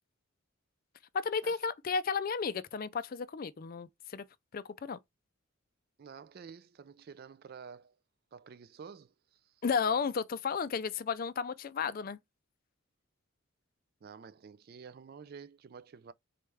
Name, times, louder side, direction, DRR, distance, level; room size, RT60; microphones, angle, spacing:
voice 1, 1.1-4.2 4.5-5.0 9.6-12.2, left 5 dB, 45° left, 0.4 m, -33 dB
voice 2, 6.0-7.9 8.3-9.6 14.0-16.1, right 6 dB, 45° right, 0.3 m, -50 dB
4.2 x 3.3 x 3.4 m
head